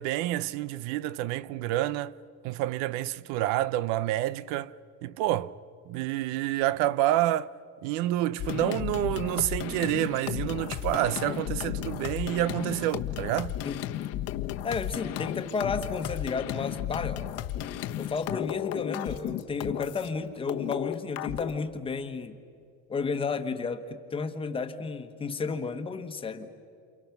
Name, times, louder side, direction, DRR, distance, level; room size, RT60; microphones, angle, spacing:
voice 1, 0.0-2.1 2.4-4.7 5.0-5.5 5.9-7.5 7.8-13.5, right 14 dB, 70° right, 0.7 m, -28 dB
sound 1, 8.4-20.1 20.5-21.5, left 12 dB, 55° left, 1.2 m, -34 dB
voice 2, 14.6-17.2 18.0-22.4 22.9-26.5, left 5 dB, 20° left, 1.3 m, -32 dB
29.0 x 29.0 x 6.0 m
cardioid pair, 170°, 29 cm